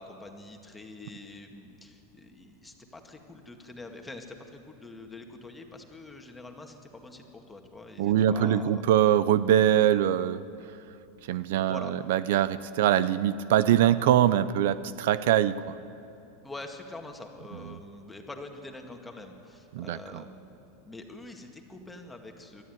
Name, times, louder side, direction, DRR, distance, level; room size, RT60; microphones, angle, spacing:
voice 1, 0.0-8.8 11.7-11.9 16.4-22.6, left 2 dB, 10° left, 3 dB, 2.0 m, -45 dB
voice 2, 8.0-10.4 11.3-15.8 19.7-20.2, right 11 dB, 75° right, 15 dB, 0.6 m, -23 dB
27.5 x 12.5 x 9.4 m, 2.7 s
supercardioid pair, 145°, 0 cm